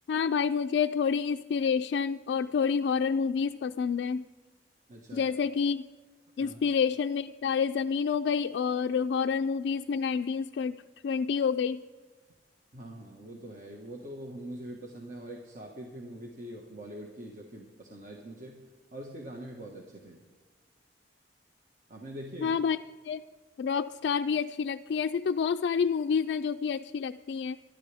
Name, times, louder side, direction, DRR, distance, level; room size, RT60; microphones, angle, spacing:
voice 1, 0.1-4.3 5.1-5.9 6.4-11.8 22.4-22.8 23.0-23.2 23.6-27.6, left 6 dB, 70° left, 7 dB, 0.3 m, -28 dB
voice 2, 4.9-5.3 6.4-6.6 12.7-18.6 18.9-20.2 21.9-22.6, right 1 dB, 45° right, 0 dB, 1.5 m, -43 dB
25.0 x 11.5 x 3.5 m, 1.3 s
head